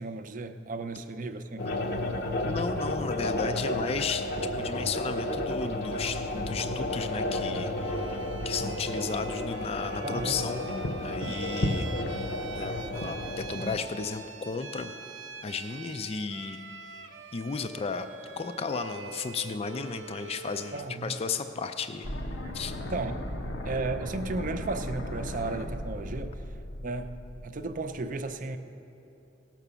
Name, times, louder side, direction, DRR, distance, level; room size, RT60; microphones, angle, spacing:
voice 1, 0.0-1.7 10.0-10.5 20.7-21.1 22.4-22.6 22.9-23.3 23.6-26.4 26.8-27.2 27.4-28.6, right 3 dB, 45° right, 9 dB, 0.5 m, -34 dB
sound 1, 1.6-13.8, left 1 dB, 60° left, 0.8 m, -32 dB
voice 2, 2.4-10.6 11.0-14.9 15.4-22.1 22.5-22.8, left 5 dB, 30° left, 8 dB, 0.4 m, -34 dB
Bowed string instrument, 7.8-20.9, right 5 dB, 90° right, 0.7 m, -44 dB
sound 2, 22.0-28.0, left 1 dB, 85° left, 0.9 m, -37 dB
17.5 x 6.0 x 6.8 m, 2.9 s
head